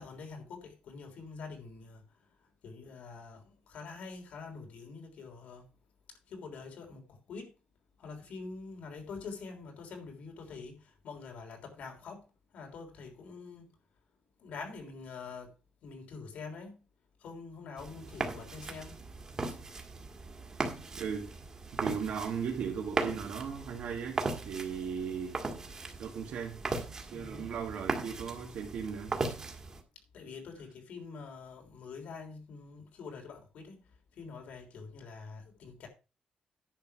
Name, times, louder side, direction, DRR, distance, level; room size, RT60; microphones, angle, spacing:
voice 1, 0.0-5.7 6.1-7.5 8.0-13.7 14.4-15.5 15.8-16.8 17.2-19.0 27.1-27.5 30.1-35.9, left 4 dB, 80° left, 3.5 m, -46 dB
sound 1, 17.8-29.8, right 3 dB, 25° right, 1.7 m, -38 dB
voice 2, 21.0-21.3 21.7-25.4 26.0-26.6 27.1-29.1, right 6 dB, 80° right, 1.8 m, -37 dB
10.5 x 6.4 x 5.7 m
wide cardioid pair, 175°, 2 cm